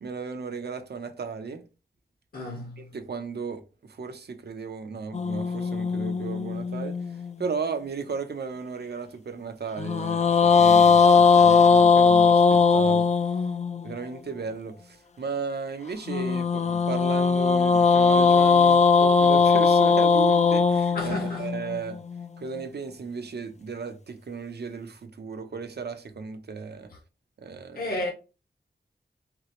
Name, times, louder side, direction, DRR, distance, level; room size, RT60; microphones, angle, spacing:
voice 1, 0.0-1.6 2.8-13.1 13.8-22.0 22.4-26.9 27.4-27.9, right 5 dB, 70° right, 0.7 m, -35 dB
voice 2, 2.3-2.9 20.9-21.5 27.7-28.1, left 1 dB, 60° left, 1.2 m, -32 dB
sound 1, 5.1-7.5 9.8-13.9 16.1-22.3, left 5 dB, 40° left, 0.4 m, -20 dB
5.9 x 2.0 x 3.0 m
wide cardioid pair, 90°, 18 cm